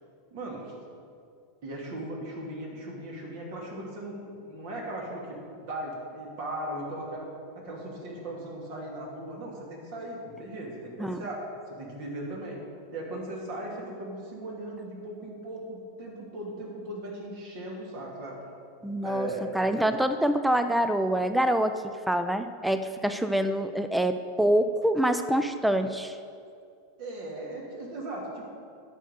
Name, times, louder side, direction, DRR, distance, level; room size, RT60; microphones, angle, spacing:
voice 1, 0.3-0.7 1.6-7.3 7.5-12.6 12.9-18.4 19.0-19.5 27.0-28.5, right 1 dB, 55° right, -2 dB, 2.8 m, -38 dB
voice 2, 18.8-19.3 19.5-26.2, right 1 dB, 5° right, 9 dB, 0.5 m, -26 dB
10.0 x 6.3 x 6.6 m, 2.3 s
figure-of-eight pair, 90°, 0 cm